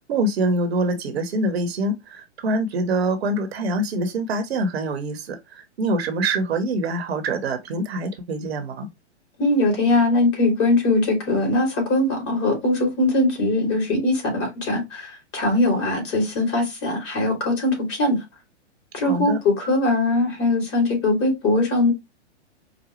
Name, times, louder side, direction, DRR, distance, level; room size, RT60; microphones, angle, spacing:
voice 1, 0.1-8.9 19.0-19.4, right 2 dB, 60° right, 1.0 m, -25 dB
voice 2, 9.4-18.2 18.9-21.9, left 2 dB, 30° left, 2.5 m, -21 dB
5.0 x 2.1 x 3.0 m
hypercardioid pair, 125°, 36 cm